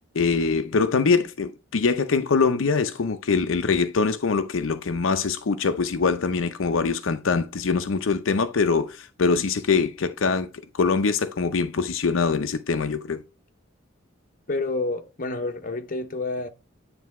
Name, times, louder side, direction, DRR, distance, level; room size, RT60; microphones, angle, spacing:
voice 1, 0.1-10.5 10.7-13.2, left 4 dB, 85° left, 0.6 m, -23 dB
voice 2, 14.5-16.5, left 3 dB, 45° left, 1.0 m, -29 dB
9.4 x 3.4 x 4.7 m
head